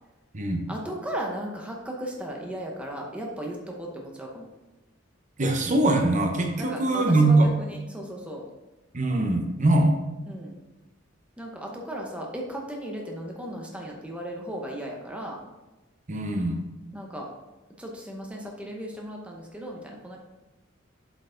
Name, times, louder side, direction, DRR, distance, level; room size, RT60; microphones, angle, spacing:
voice 1, 0.7-4.5 6.6-8.4 10.3-10.6 11.4-15.4 16.9-17.3 17.8-20.2, right 1 dB, 5° right, -1 dB, 0.8 m, -36 dB
voice 2, 5.4-7.4 8.9-9.9 16.1-16.6, right 2 dB, 40° right, 3 dB, 0.9 m, -22 dB
7.9 x 4.5 x 3.8 m, 1.1 s
head